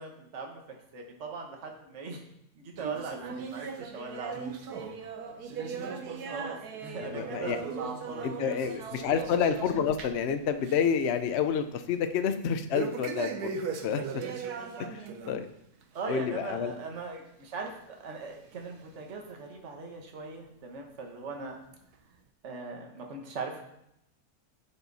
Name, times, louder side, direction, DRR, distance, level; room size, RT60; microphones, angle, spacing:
voice 1, 0.0-2.2 2.6-4.3 6.3-8.7 9.1-9.3 15.9-21.6 22.4-23.6, right 4 dB, 50° right, 2 dB, 1.6 m, -40 dB
sound 1, 2.8-10.3 10.6-11.0 11.3-11.4 12.7-15.4 15.8-16.0 16.7-16.8 17.7-17.8 18.5-18.6, right 5 dB, 90° right, 1.4 m, -38 dB
voice 2, 7.0-7.6 8.2-14.0 14.8-15.5 16.1-16.7, left 7 dB, 55° left, 8 dB, 0.8 m, -29 dB
10.5 x 5.5 x 4.0 m, 0.81 s
omnidirectional pair, 1.6 m